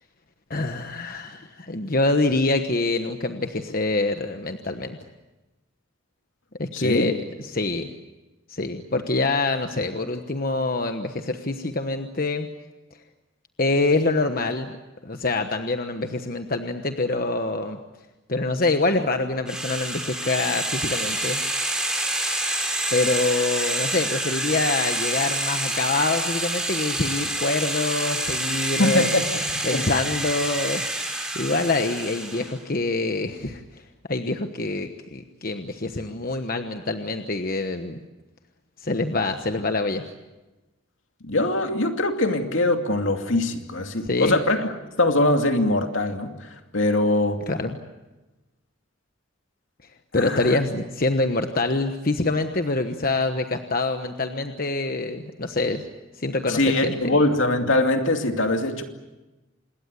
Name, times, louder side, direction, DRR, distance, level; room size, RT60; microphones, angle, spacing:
voice 1, 0.5-5.0 6.6-7.9 8.5-12.5 13.6-14.7 15.0-17.8 18.3-21.4 22.9-29.1 29.6-30.8 31.3-33.8 34.1-38.0 38.8-40.0 44.0-44.4 47.5-47.8 50.1-55.8 56.2-57.0, left 2 dB, 45° left, 6 dB, 1.2 m, -25 dB
voice 2, 6.7-7.1 28.8-29.8 41.2-44.7 45.0-47.4 50.1-50.6 56.5-58.8, left 2 dB, 75° left, 5 dB, 2.6 m, -22 dB
sound 1, 19.5-32.5, right 1 dB, 5° right, 5.0 m, -27 dB
27.0 x 21.0 x 8.3 m, 1.1 s
head